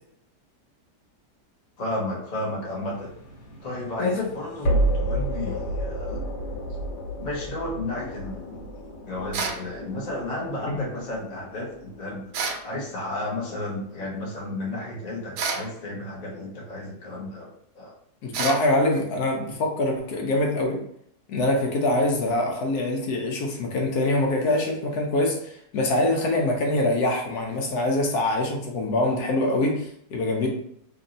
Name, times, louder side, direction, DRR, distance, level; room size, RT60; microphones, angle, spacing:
voice 1, 1.8-3.1 3.6-6.2 7.2-8.6 9.0-12.3 12.6-17.5 17.7-18.0, left 2 dB, 35° left, -3 dB, 0.7 m, -32 dB
sound 1, 2.8-13.8, right 1 dB, 85° left, 1.6 m, -31 dB
sound 2, 9.3-9.6 12.3-12.7 15.4-15.7 18.3-18.7, right 5 dB, 75° right, 1.1 m, -28 dB
voice 2, 18.2-20.8 21.3-30.5, left 1 dB, 70° left, 1 dB, 1.1 m, -24 dB
3.0 x 2.7 x 3.8 m, 0.71 s
omnidirectional pair, 1.8 m